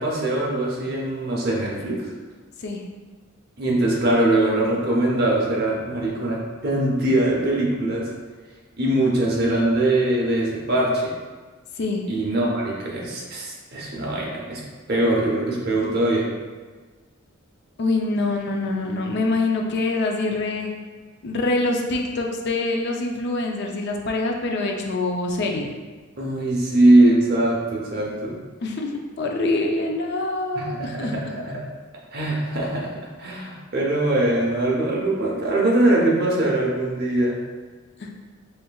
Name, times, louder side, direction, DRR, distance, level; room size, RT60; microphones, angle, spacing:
voice 1, 0.0-2.1 3.6-8.1 8.8-11.1 12.1-14.6 14.9-16.3 26.2-28.3 30.5-31.6 32.1-37.4, right 1 dB, 50° right, -3 dB, 0.8 m, -22 dB
voice 2, 17.8-20.7 21.2-25.7 28.6-28.9 29.2-31.1 38.0-38.1, left 2 dB, 55° left, 2 dB, 0.4 m, -25 dB
4.4 x 3.3 x 2.3 m, 1.4 s
head